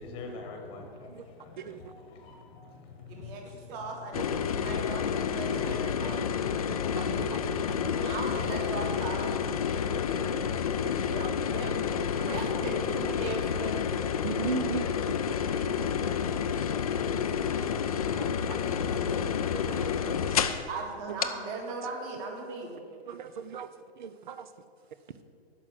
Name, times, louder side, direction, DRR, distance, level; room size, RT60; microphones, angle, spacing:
voice 1, 0.0-4.0 4.6-4.9 5.4-5.7 6.0-8.4 9.6-9.9, left 3 dB, 15° left, 1.2 m, -46 dB
voice 2, 1.6-1.9 4.1-4.6 5.5-5.6 6.7-8.2 10.8-11.3 12.2-12.4 14.2-14.9 18.0-18.8 19.5-20.4 23.1-23.7 24.0-24.5, right 6 dB, 45° right, 0.6 m, -39 dB
voice 3, 3.1-4.2 4.5-6.3 8.0-9.3 11.0-13.9 15.5-15.7 18.5-19.1 20.7-22.8, right 3 dB, 25° right, 1.6 m, -38 dB
sound 1, 4.1-20.7 21.2-21.3, left 7 dB, 35° left, 0.4 m, -29 dB
voice 4, 5.5-6.4 9.9-10.4 10.9-11.0 14.4-14.8 16.3-17.3 17.8-18.2 19.5-19.6 21.5-21.6 24.8-25.1, right 4 dB, 70° right, 1.2 m, -47 dB
10.5 x 6.1 x 8.1 m
hypercardioid pair, 160°, 32 cm